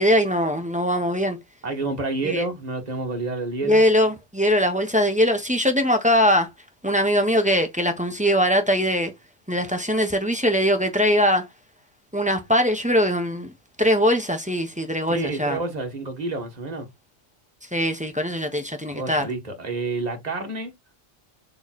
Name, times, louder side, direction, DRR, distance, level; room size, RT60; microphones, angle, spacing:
voice 1, 0.0-1.4 2.2-2.4 3.6-6.5 6.8-9.1 9.5-11.5 12.1-13.5 13.8-15.6 17.7-19.3, equal, 5° right, 1.1 m, -21 dB
voice 2, 1.6-3.8 15.1-16.9 18.9-20.7, right 3 dB, 35° right, 1.6 m, -29 dB
7.0 x 3.3 x 4.2 m
omnidirectional pair, 1.3 m